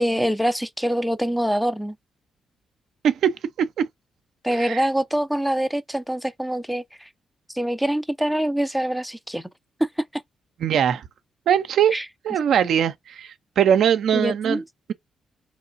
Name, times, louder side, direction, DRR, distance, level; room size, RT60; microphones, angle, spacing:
voice 1, 0.0-2.0 4.4-7.1 7.5-9.4 9.8-10.2 11.9-12.1 14.1-14.6, equal, ahead, 0.5 m, -24 dB
voice 2, 3.0-3.9 4.6-4.8 10.6-11.0 11.5-12.0 12.2-14.6, right 9 dB, 70° right, 0.4 m, -21 dB
3.6 x 3.0 x 2.5 m
supercardioid pair, 50°, 0 cm